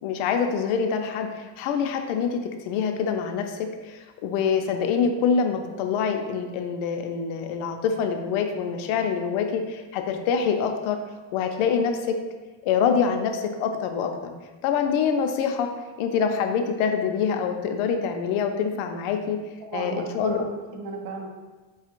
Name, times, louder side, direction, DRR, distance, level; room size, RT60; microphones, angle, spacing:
voice 1, 0.0-11.0 11.3-12.2 12.6-14.3 14.6-15.7 16.0-19.4 19.7-20.4, left 6 dB, 90° left, 5 dB, 0.6 m, -25 dB
voice 2, 19.6-21.3, right 3 dB, 50° right, 1 dB, 0.7 m, -34 dB
4.8 x 2.4 x 2.9 m, 1.3 s
cardioid pair, 125°, 47 cm